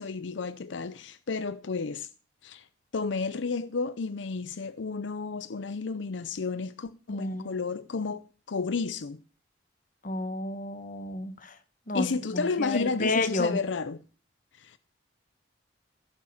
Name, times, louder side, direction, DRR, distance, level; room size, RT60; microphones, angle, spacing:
voice 1, 0.0-2.1 2.4-2.7 2.9-9.2 11.9-14.0 14.5-14.8, left 4 dB, 75° left, 0.6 m, -32 dB
voice 2, 7.1-7.5 10.0-11.6 11.9-12.1 12.3-13.6, left 2 dB, 45° left, 1.5 m, -31 dB
16.5 x 7.1 x 7.1 m
head